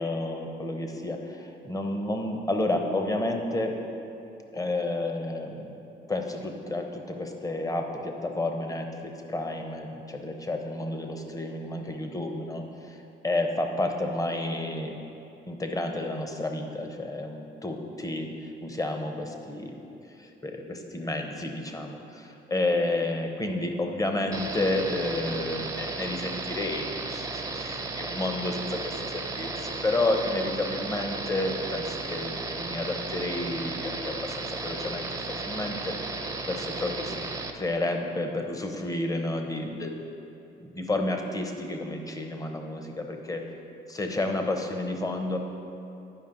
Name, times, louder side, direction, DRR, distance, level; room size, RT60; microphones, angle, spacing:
voice 1, 0.0-3.8 4.5-5.7 6.1-15.0 15.5-19.8 20.2-35.0 35.4-35.9 36.5-37.3 37.5-39.9 40.6-43.4 43.9-45.4, left 2 dB, 15° left, 4 dB, 0.8 m, -31 dB
sound 1, 24.3-37.5, right 3 dB, 15° right, 0.6 m, -34 dB
10.5 x 5.2 x 3.9 m, 2.8 s
cardioid pair, 90°, 20 cm